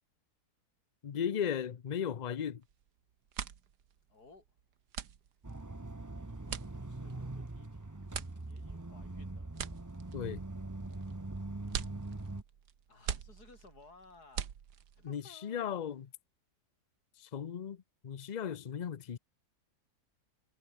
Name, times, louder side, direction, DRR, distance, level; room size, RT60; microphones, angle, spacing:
voice 1, 1.0-2.6 10.1-10.4 15.0-16.1 17.2-19.2, left 8 dB, 85° left, 0.3 m, -36 dB
sound 1, 2.6-2.9 3.2-15.1, right 9 dB, 75° right, 1.8 m, -44 dB
voice 2, 4.1-4.5 6.0-7.9 8.4-9.5 12.9-14.5 15.0-15.8, left 3 dB, 70° left, 4.6 m, -59 dB
sound 2, 5.4-12.4, right 2 dB, 15° right, 0.9 m, -42 dB
omnidirectional pair, 1.8 m